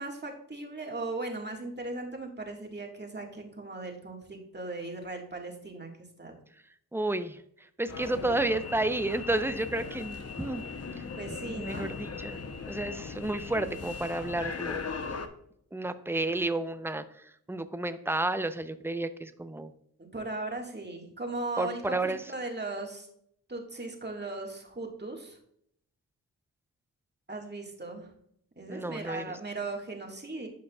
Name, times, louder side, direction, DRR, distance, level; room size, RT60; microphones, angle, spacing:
voice 1, 0.0-5.9 6.2-6.3 8.0-8.6 11.2-11.9 20.0-23.1 23.5-25.4 27.3-28.1 28.6-30.5, right 2 dB, 25° right, 1 dB, 1.8 m, -38 dB
voice 2, 6.9-10.7 11.0-11.1 11.5-12.4 12.7-14.8 15.7-19.7 21.6-22.2 28.7-29.4, right 2 dB, 5° right, 11 dB, 0.6 m, -31 dB
sound 1, 7.9-15.3, left 5 dB, 40° left, 0.8 m, -39 dB
12.0 x 5.2 x 2.3 m, 0.69 s
supercardioid pair, 45°, 37 cm